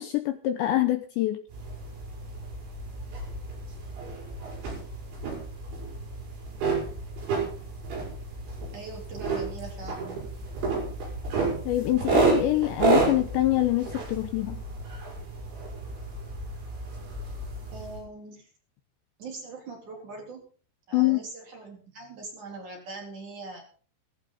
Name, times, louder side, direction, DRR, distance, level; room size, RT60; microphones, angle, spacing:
voice 1, 0.0-1.4 11.7-14.6 20.9-21.2, left 15 dB, 75° left, 8 dB, 2.8 m, -25 dB
sound 1, 1.5-18.0, right 3 dB, 60° right, 8.3 m, -31 dB
voice 2, 8.7-10.1 17.7-18.5 19.2-20.4 20.9-23.6, right 3 dB, 40° right, 1 dB, 5.0 m, -41 dB
18.5 x 14.5 x 4.1 m, 0.42 s
omnidirectional pair, 6.0 m